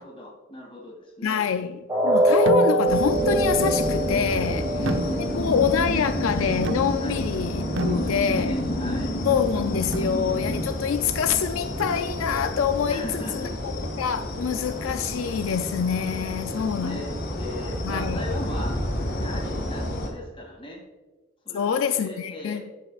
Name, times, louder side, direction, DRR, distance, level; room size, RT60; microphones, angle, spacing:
voice 1, 0.0-1.4 4.4-5.5 7.0-7.3 7.8-9.1 12.9-13.6 16.4-18.8 19.1-20.8 21.4-22.7, left 1 dB, 25° left, 2.5 m, -38 dB
voice 2, 1.2-4.7 5.3-8.5 9.2-13.7 14.0-17.0 17.8-18.2 21.5-22.6, left 7 dB, 75° left, 0.4 m, -26 dB
sound 1, 1.9-7.9 8.3-8.4 8.9-9.0, right 1 dB, 15° right, 2.5 m, -25 dB
sound 2, 2.5-3.1 4.9-5.6 6.6-7.2 7.8-8.6 9.9-10.3 11.8-12.4, right 1 dB, 65° right, 0.7 m, -32 dB
sound 3, 2.9-20.1, left 1 dB, 50° left, 2.4 m, -30 dB
14.5 x 6.5 x 2.4 m
head